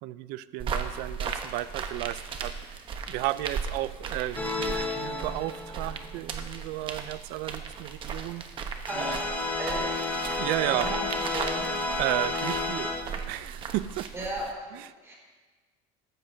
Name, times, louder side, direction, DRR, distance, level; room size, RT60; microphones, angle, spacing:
voice 1, 0.0-2.5 3.1-8.5 9.0-9.2 10.3-10.9 12.0-14.1 14.7-14.9, right 16 dB, 70° right, 16 dB, 0.5 m, -33 dB
sound 1, 0.6-14.5, right 6 dB, 35° right, 0.9 m, -37 dB
sound 2, 4.4-6.3 8.9-13.0, left 2 dB, 10° left, 1.0 m, -31 dB
voice 2, 8.9-9.3 9.6-10.0 10.7-11.0 11.3-11.6 14.1-14.4 14.7-15.1, right 1 dB, 15° right, -4 dB, 4.2 m, -35 dB
14.0 x 13.5 x 2.7 m, 1.3 s
cardioid pair, 160°, 16 cm